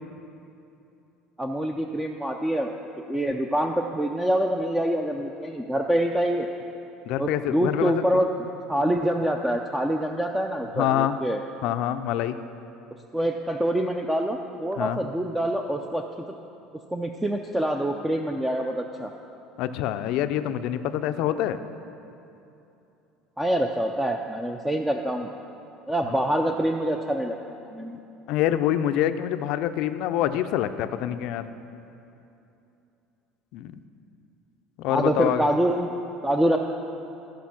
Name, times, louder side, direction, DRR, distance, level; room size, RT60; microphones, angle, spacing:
voice 1, 1.4-2.7 3.1-6.5 7.2-8.3 8.7-11.4 13.1-16.0 16.9-19.1 23.4-25.3 25.9-27.4 27.7-28.0 34.9-35.9 36.2-36.6, right 1 dB, 5° right, 3 dB, 0.4 m, -25 dB
voice 2, 7.1-8.0 10.8-11.2 11.6-12.4 14.8-15.0 19.6-21.6 26.1-26.2 28.3-31.5 33.5-33.8 34.8-35.4, left 11 dB, 65° left, 10 dB, 0.4 m, -26 dB
13.5 x 5.1 x 5.9 m, 2.8 s
cardioid pair, 130°, 0 cm